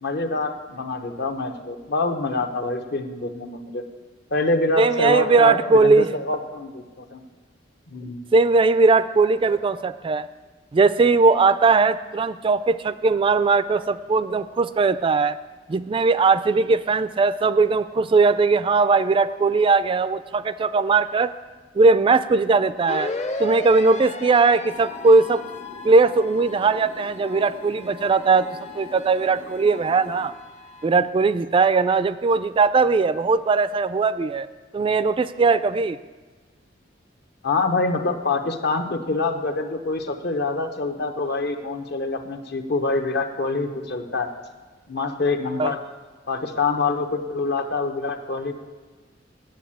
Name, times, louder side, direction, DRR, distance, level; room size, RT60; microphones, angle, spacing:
voice 1, 0.0-3.9 4.3-7.2 7.9-8.2 37.4-44.3 44.9-45.8 46.3-48.5, left 3 dB, 60° left, 6 dB, 1.0 m, -25 dB
voice 2, 4.8-6.1 8.3-10.3 10.7-15.4 15.7-21.3 21.8-23.1 23.4-25.4 25.8-28.5 28.7-30.3 30.8-34.5 34.7-36.0 45.6-45.7, right 4 dB, 30° right, 14 dB, 0.3 m, -19 dB
sound 1, 22.9-30.9, left 3 dB, 35° left, 0.7 m, -36 dB
sound 2, 24.7-30.3, left 2 dB, 75° left, 1.6 m, -45 dB
9.2 x 7.6 x 8.7 m, 1.4 s
head